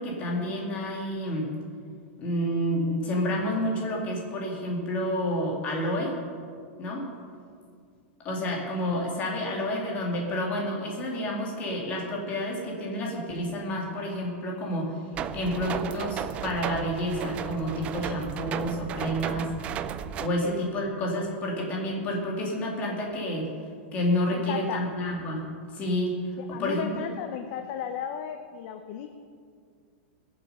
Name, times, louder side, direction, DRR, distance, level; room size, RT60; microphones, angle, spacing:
voice 1, 0.0-1.5 2.2-6.2 6.8-7.1 8.2-14.9 15.3-19.5 20.2-23.5 23.9-25.4 25.7-26.2 26.6-26.9, left 1 dB, 20° left, -1 dB, 2.4 m, -29 dB
sound 1, 15.1-20.3, right 9 dB, 20° right, 0.3 m, -34 dB
voice 2, 24.3-24.8 26.4-29.1, left 8 dB, 40° left, 7 dB, 0.6 m, -34 dB
20.5 x 7.3 x 5.5 m, 2.2 s
supercardioid pair, 175°, 7 cm